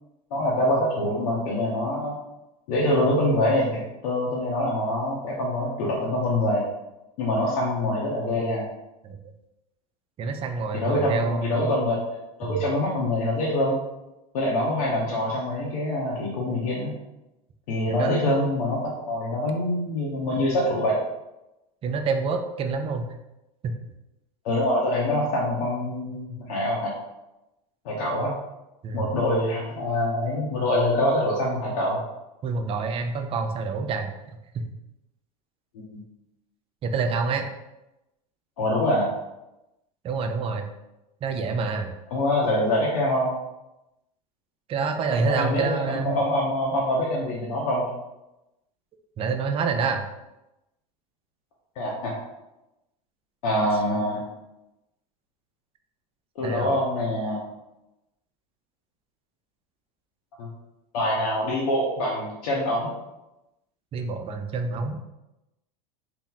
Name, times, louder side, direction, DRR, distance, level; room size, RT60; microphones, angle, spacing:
voice 1, 0.3-2.2 2.7-6.7 7.2-8.7 10.7-12.0 12.4-13.8 14.3-16.9 17.7-21.0 24.4-26.9 27.8-28.3 28.9-32.0 35.9-36.0 38.6-39.1 42.1-43.4 45.1-47.8 51.8-52.1 53.4-54.2 56.4-57.4 60.4-60.5 60.9-62.9, left 1 dB, 75° left, -4 dB, 0.8 m, -25 dB
voice 2, 10.2-11.8 12.4-12.6 17.9-18.5 21.8-23.1 23.6-23.7 28.8-29.1 32.4-34.1 34.5-34.6 36.8-37.5 40.0-40.7 41.2-41.9 44.7-46.2 49.2-50.0 56.4-56.7 63.9-65.0, right 4 dB, 30° right, 6 dB, 0.4 m, -27 dB
2.9 x 2.1 x 3.8 m, 0.95 s
hypercardioid pair, 105°, 20 cm